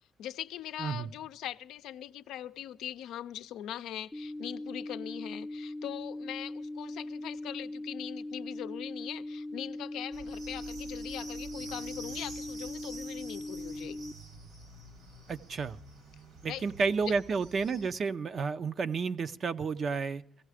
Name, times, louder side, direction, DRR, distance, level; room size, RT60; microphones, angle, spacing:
voice 1, 0.2-14.0 16.5-16.7 17.1-17.2, left 11 dB, 85° left, 0.5 m, -41 dB
sound 1, 4.1-14.1, left 1 dB, 10° left, 0.6 m, -40 dB
sound 2, 10.1-17.9, right 2 dB, 75° right, 3.4 m, -48 dB
voice 2, 15.3-15.8 16.4-20.2, right 5 dB, 50° right, 0.7 m, -31 dB
16.0 x 16.0 x 4.9 m
cardioid pair, 90°, 0 cm